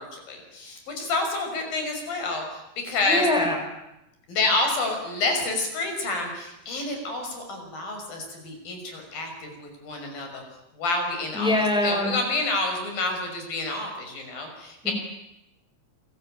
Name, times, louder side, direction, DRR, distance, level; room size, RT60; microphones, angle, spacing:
voice 1, 0.0-3.3 4.3-10.4 10.7-11.5 11.8-14.9, left 2 dB, 80° left, 4 dB, 7.6 m, -28 dB
voice 2, 3.1-3.6 11.3-12.1 14.8-14.9, left 1 dB, ahead, 3 dB, 6.2 m, -23 dB
28.5 x 22.5 x 9.0 m, 0.89 s
omnidirectional pair, 4.0 m